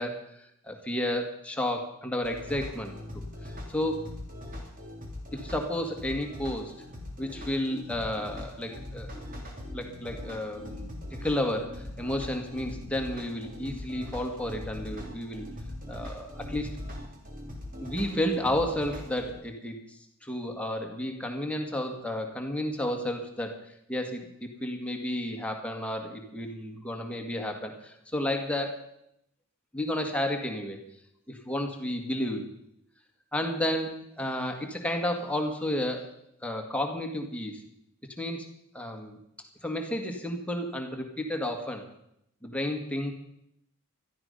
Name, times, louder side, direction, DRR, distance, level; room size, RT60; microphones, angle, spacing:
voice 1, 0.0-4.0 5.3-6.7 7.2-9.1 9.7-10.9 11.2-15.5 15.9-16.7 17.8-28.8 29.7-30.8 31.3-32.5 33.3-36.1 36.4-37.6 38.2-38.5 38.7-39.2 39.6-41.9 42.4-43.1, left 1 dB, 5° left, 3 dB, 1.9 m, -32 dB
sound 1, 2.2-19.3, left 1 dB, 40° right, 3.3 m, -41 dB
17.0 x 13.0 x 5.5 m, 0.76 s
head